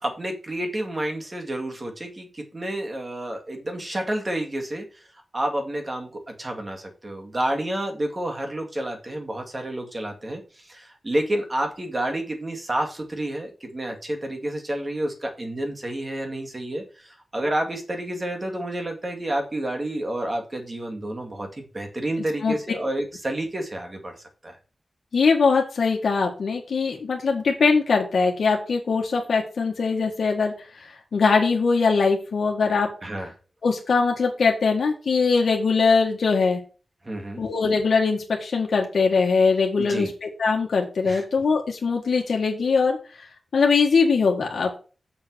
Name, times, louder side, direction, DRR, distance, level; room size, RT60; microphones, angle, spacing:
voice 1, 0.0-4.8 5.3-6.1 6.4-24.1 24.4-24.6 33.0-33.3 37.0-37.4 39.8-40.1 41.0-41.2, right 1 dB, 25° right, 3 dB, 2.1 m, -29 dB
voice 2, 25.1-30.5 31.1-32.9 33.6-36.6 37.4-43.0 43.5-44.7, left 4 dB, 80° left, 0 dB, 1.7 m, -21 dB
7.2 x 5.2 x 6.2 m, 0.35 s
wide cardioid pair, 130°, 0 cm